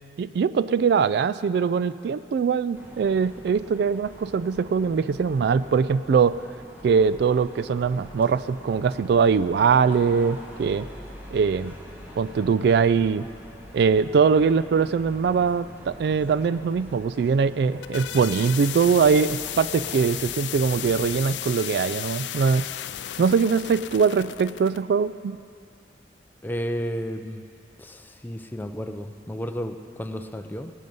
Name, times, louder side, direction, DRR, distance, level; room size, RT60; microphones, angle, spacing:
voice 1, 0.2-6.4 6.8-10.9 11.3-11.7 12.2-13.3 13.7-22.7 23.2-25.4, right 6 dB, 65° right, 15 dB, 0.3 m, -22 dB
sound 1, 2.7-21.2, equal, 10° right, 1.7 m, -44 dB
sound 2, 17.7-24.8, left 12 dB, 85° left, 0.4 m, -34 dB
voice 2, 26.4-27.4 27.8-30.7, equal, 10° left, 7 dB, 0.5 m, -32 dB
18.0 x 9.2 x 5.5 m, 2.4 s
head